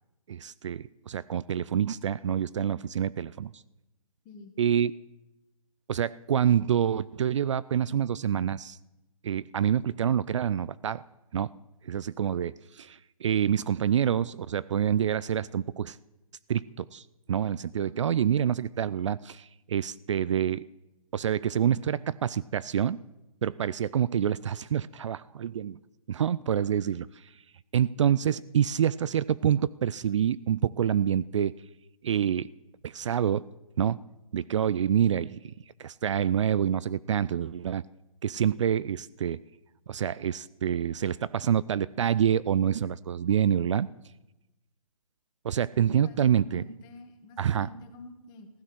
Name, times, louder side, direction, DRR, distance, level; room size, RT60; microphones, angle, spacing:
voice 1, 0.3-3.6 4.6-4.9 5.9-8.8 9.2-11.0 11.3-11.5 11.9-16.0 16.5-20.6 21.1-23.0 23.4-25.8 26.1-27.1 27.7-31.5 32.0-32.5 32.8-33.4 33.8-34.0 34.3-35.5 35.8-37.8 38.2-39.4 39.9-43.9 45.4-46.6 47.4-47.7, right 9 dB, 55° right, 19 dB, 0.4 m, -27 dB
voice 2, 17.8-18.3 45.9-48.5, left 3 dB, 20° left, 6 dB, 1.7 m, -48 dB
15.5 x 12.5 x 6.2 m, 0.95 s
hypercardioid pair, 145°, 19 cm